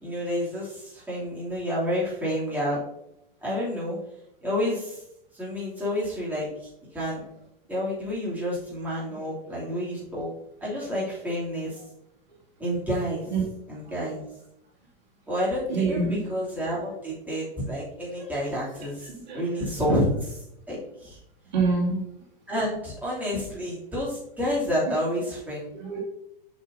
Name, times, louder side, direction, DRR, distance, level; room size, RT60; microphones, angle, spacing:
voice 1, 0.0-2.8 3.4-4.0 4.4-5.0 5.3-6.5 6.9-7.2 7.7-10.3 10.6-11.7 12.6-13.3 13.7-14.2 15.3-20.4 20.7-21.2 22.5-25.7, equal, 5° right, -8 dB, 2.8 m, -29 dB
voice 2, 15.7-16.2 19.3-19.4 21.5-22.0 25.8-26.0, right 4 dB, 50° right, -4 dB, 2.4 m, -25 dB
8.0 x 6.5 x 2.7 m, 0.79 s
figure-of-eight pair, 100°, 29 cm